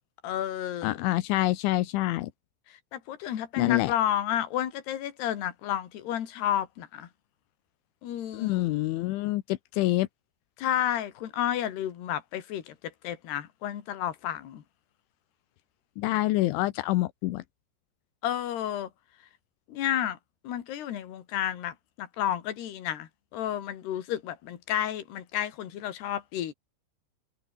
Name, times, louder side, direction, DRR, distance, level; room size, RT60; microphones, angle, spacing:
voice 1, 0.2-0.9 2.9-7.1 8.0-8.7 10.6-12.8 13.0-14.6 18.2-18.9 19.7-20.2 20.4-26.5, left 11 dB, 65° left, 4.2 m, -31 dB
voice 2, 0.8-2.3 3.6-3.9 8.3-10.1 16.0-17.4, left 17 dB, 85° left, 3.4 m, -26 dB
omnidirectional pair, 5.4 m